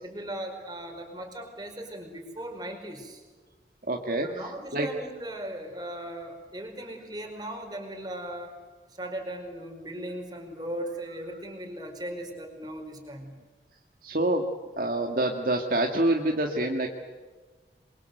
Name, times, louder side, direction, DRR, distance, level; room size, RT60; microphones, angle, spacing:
voice 1, 0.0-3.2 4.2-8.6 8.9-13.3, right 1 dB, 20° right, 3 dB, 5.1 m, -38 dB
voice 2, 3.8-4.9 14.0-14.4 14.8-16.9, right 1 dB, 50° right, 2 dB, 1.9 m, -27 dB
28.0 x 23.5 x 8.0 m, 1.4 s
head